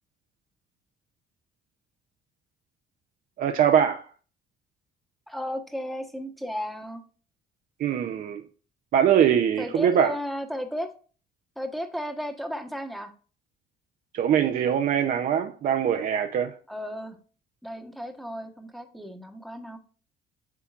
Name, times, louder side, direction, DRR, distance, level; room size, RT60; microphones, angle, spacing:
voice 1, 3.4-4.1 7.8-8.4 8.9-10.2 14.1-16.6, right 9 dB, 55° right, 0.7 m, -22 dB
voice 2, 5.3-7.0 9.6-10.9 11.6-13.1 16.7-17.2 17.6-19.8, equal, ahead, 1.2 m, -34 dB
8.3 x 5.7 x 2.5 m
cardioid pair, 110°, 17 cm